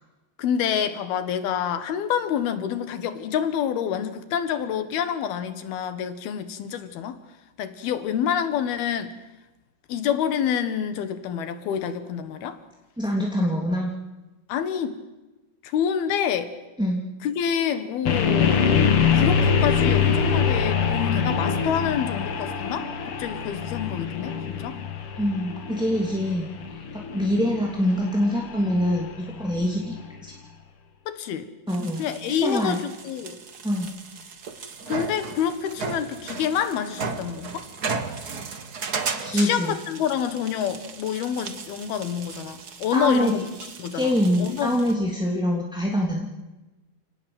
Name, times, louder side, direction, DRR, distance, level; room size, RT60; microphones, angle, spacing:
voice 1, 0.4-7.2 7.6-9.2 9.9-12.6 14.5-15.0 15.6-16.5 17.2-18.6 19.1-24.8 31.1-31.5 32.0-33.4 34.9-37.7 39.3-43.5 43.8-44.8, left 8 dB, 80° left, 11 dB, 3.5 m, -27 dB
voice 2, 13.0-13.9 16.8-17.0 25.2-26.5 26.9-29.9 30.2-30.3 31.7-32.0 32.4-32.8 33.6-33.9 39.2-39.7 42.9-43.3 43.9-46.3, equal, ahead, -2 dB, 2.1 m, -24 dB
sound 1, 18.1-30.0, left 6 dB, 45° left, 2.1 m, -24 dB
sound 2, 31.7-44.9, right 5 dB, 60° right, 1.0 m, -36 dB
29.5 x 18.5 x 7.9 m, 1.1 s
omnidirectional pair, 4.4 m